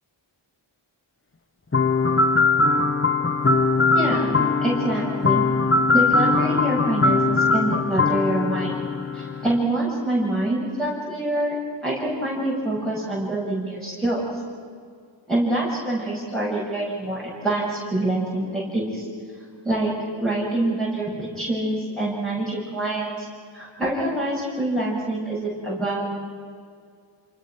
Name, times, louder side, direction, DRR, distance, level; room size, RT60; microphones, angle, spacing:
sound 1, 1.7-9.6, left 3 dB, 25° left, 1.4 m, -21 dB
voice 1, 3.9-5.5 5.9-8.9 9.1-11.6 11.8-14.3 15.3-19.0 19.6-23.3 23.5-26.0, right 1 dB, ahead, -8 dB, 7.6 m, -26 dB
28.0 x 27.5 x 6.2 m, 2.1 s
cardioid pair, 60°, 47 cm